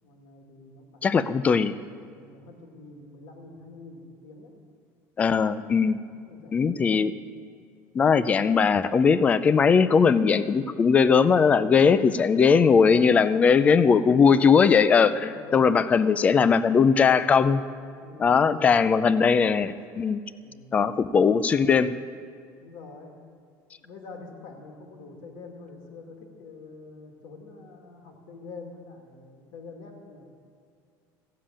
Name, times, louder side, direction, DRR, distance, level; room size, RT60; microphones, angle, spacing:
voice 1, 0.0-1.1 2.0-4.5 5.7-6.8 13.0-13.5 15.3-15.7 18.0-18.9 20.4-20.8 22.6-23.1 23.8-30.3, left 3 dB, 60° left, 2 dB, 2.2 m, -46 dB
voice 2, 1.0-1.7 5.2-6.0 6.5-7.1 7.9-17.6 18.2-20.2 20.7-21.9, left 6 dB, 15° left, 14 dB, 0.4 m, -20 dB
15.0 x 7.5 x 8.7 m, 2.3 s
cardioid pair, 180°, 8 cm